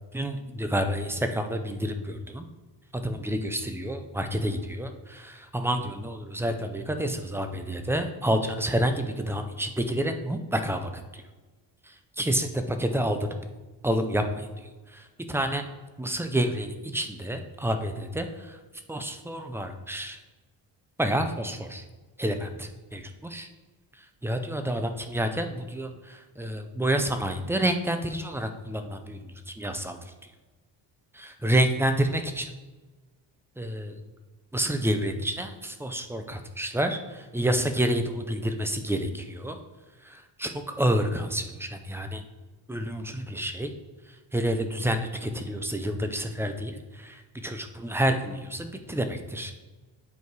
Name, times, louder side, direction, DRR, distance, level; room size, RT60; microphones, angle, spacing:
voice 1, 0.1-2.4 2.9-11.2 12.2-13.3 13.8-14.5 14.9-15.6 16.0-18.6 18.9-20.2 21.0-21.8 22.2-23.5 24.2-29.2 29.6-30.0 31.1-32.5 33.6-33.9 34.5-39.6 40.1-42.2 42.7-43.7 44.3-49.6, right 1 dB, 5° right, 7 dB, 0.3 m, -29 dB
8.2 x 4.7 x 4.6 m, 1.3 s
wide cardioid pair, 175°, 44 cm